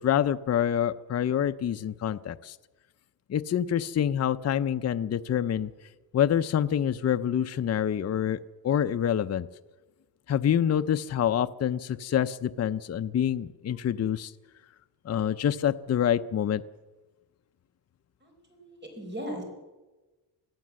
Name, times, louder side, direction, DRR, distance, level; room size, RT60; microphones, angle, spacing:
voice 1, 0.0-2.6 3.3-5.7 6.1-9.5 10.3-14.3 15.1-16.6, left 9 dB, 40° left, 10 dB, 0.6 m, -26 dB
voice 2, 18.2-19.4, equal, 25° right, 3 dB, 4.6 m, -38 dB
23.5 x 15.0 x 7.6 m, 1.2 s
wide cardioid pair, 145°, 40 cm